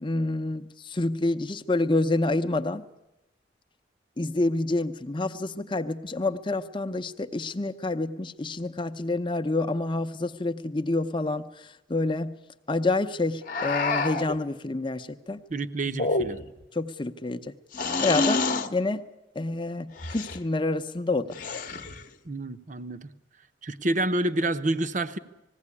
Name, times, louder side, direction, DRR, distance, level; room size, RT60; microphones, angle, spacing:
voice 1, 0.0-2.9 4.2-12.3 12.7-15.4 16.7-17.5 18.0-18.5 18.7-19.1 19.3-21.4, left 2 dB, 25° left, 10 dB, 0.7 m, -28 dB
sound 1, 13.5-14.4 15.9-16.6 17.7-18.7 20.0-20.4 21.3-22.0, left 3 dB, 45° left, 0.9 m, -28 dB
voice 2, 15.5-16.4 22.2-23.1 23.6-25.2, right 2 dB, 40° right, 11 dB, 0.8 m, -28 dB
20.0 x 16.0 x 9.7 m, 0.98 s
head